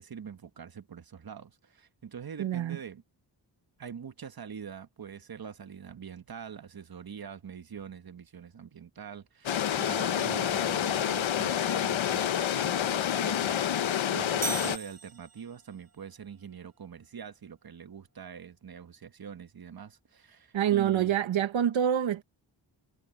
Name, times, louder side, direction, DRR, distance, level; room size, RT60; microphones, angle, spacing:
voice 1, 0.0-3.0 3.8-13.6 14.1-21.2, right 7 dB, 50° right, 1.4 m, -44 dB
voice 2, 2.4-2.8 20.5-22.2, right 10 dB, 85° right, 1.0 m, -26 dB
sound 1, 9.5-14.8, left 10 dB, 85° left, 1.1 m, -28 dB
sound 2, 14.4-15.8, right 4 dB, 35° right, 1.3 m, -37 dB
cardioid pair, 65°, 46 cm